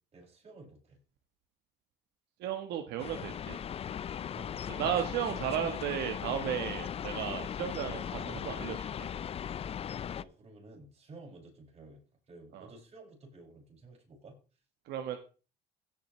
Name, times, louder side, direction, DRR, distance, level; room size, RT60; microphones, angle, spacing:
voice 1, 0.1-1.0 4.2-5.3 10.2-14.4, right 2 dB, 40° right, 0 dB, 6.3 m, -52 dB
voice 2, 2.4-3.6 4.8-9.1 12.5-12.7 14.8-15.2, right 9 dB, 80° right, 6 dB, 1.3 m, -34 dB
sound 1, 3.0-10.2, left 8 dB, 35° left, 0.5 m, -38 dB
16.5 x 7.5 x 3.2 m, 0.34 s
cardioid pair, 110°, 17 cm